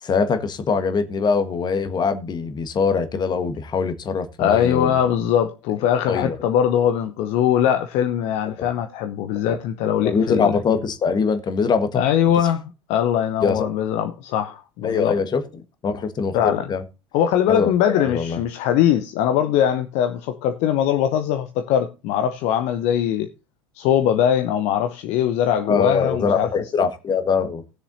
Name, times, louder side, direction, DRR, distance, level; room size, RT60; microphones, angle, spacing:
voice 1, 0.0-5.0 6.1-6.4 8.6-8.7 9.5-9.6 10.0-12.0 13.4-13.7 14.8-15.4 15.8-16.8 17.5-18.4 25.7-27.6, left 5 dB, 30° left, 1.4 m, -23 dB
voice 2, 4.4-10.5 11.9-15.1 16.3-16.7 17.1-23.3 23.8-26.5, left 10 dB, 50° left, 0.8 m, -21 dB
18.5 x 7.0 x 2.7 m
figure-of-eight pair, 70°, 15 cm